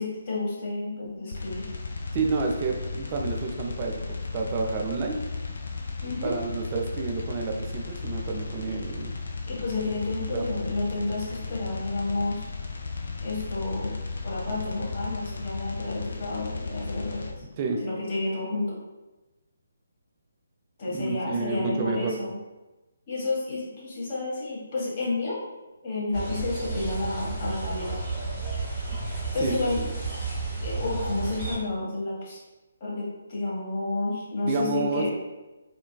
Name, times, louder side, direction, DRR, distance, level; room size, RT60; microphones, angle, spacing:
voice 1, 0.0-1.7 6.0-6.3 9.5-12.4 13.2-14.0 14.2-17.3 17.8-18.8 20.8-22.3 23.1-25.4 25.8-28.0 29.3-29.8 30.6-32.4 32.8-35.1, left 2 dB, 35° left, -6 dB, 1.0 m, -30 dB
sound 1, 1.3-17.3, left 4 dB, 60° left, 0.4 m, -35 dB
voice 2, 2.1-5.2 6.2-9.1 10.3-10.5 17.6-17.8 20.9-22.1 29.4-29.6 34.4-35.1, right 4 dB, 30° right, 1 dB, 0.4 m, -29 dB
sound 2, 26.1-31.6, right 3 dB, 5° left, 1.1 m, -32 dB
3.2 x 2.2 x 2.2 m, 1.1 s
figure-of-eight pair, 140°, 0 cm